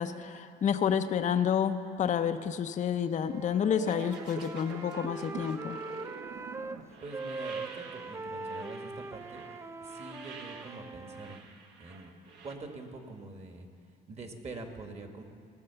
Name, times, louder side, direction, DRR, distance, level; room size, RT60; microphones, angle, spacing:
voice 1, 0.0-5.8, left 8 dB, 40° left, 9 dB, 0.5 m, -29 dB
Wind instrument woodwind instrument, 3.2-6.8 7.1-11.4, right 3 dB, 15° right, 0.4 m, -42 dB
sound 1, 3.8-12.5, right 5 dB, 70° right, 1.3 m, -47 dB
voice 2, 7.0-9.4 9.8-11.4 11.8-12.1 12.4-13.7 14.1-15.2, right 3 dB, 35° right, 5 dB, 1.4 m, -44 dB
18.0 x 6.6 x 6.7 m, 2.3 s
cardioid pair, 95°, 18 cm